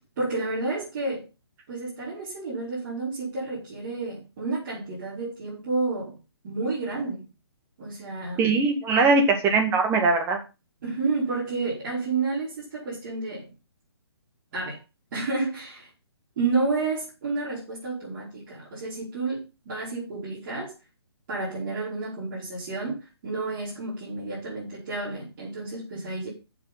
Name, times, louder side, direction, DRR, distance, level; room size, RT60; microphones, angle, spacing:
voice 1, 0.2-1.3 1.7-6.2 6.4-7.3 7.8-8.4 10.8-13.5 14.5-14.8 15.1-15.9 16.4-20.7 21.3-26.3, right 3 dB, 40° right, 5.2 m, -30 dB
voice 2, 8.4-10.4, right 3 dB, 15° right, 2.2 m, -21 dB
9.7 x 7.2 x 5.5 m
figure-of-eight pair, 135°, 14 cm